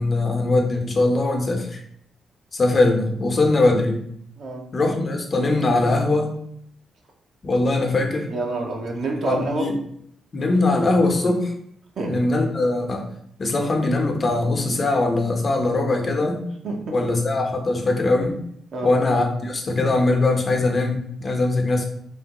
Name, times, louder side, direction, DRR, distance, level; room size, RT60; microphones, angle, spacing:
voice 1, 0.0-1.8 2.5-4.0 4.7-6.3 7.4-8.3 9.2-9.7 10.3-11.5 12.1-13.0 13.4-16.4 16.9-18.4 18.8-21.9, left 2 dB, 45° left, 3 dB, 0.6 m, -21 dB
voice 2, 4.4-4.7 8.3-9.7 12.0-12.3 16.6-16.9 18.7-19.0, right 3 dB, 65° right, 1 dB, 0.6 m, -27 dB
3.2 x 2.1 x 2.9 m, 0.68 s
hypercardioid pair, 40°, 0 cm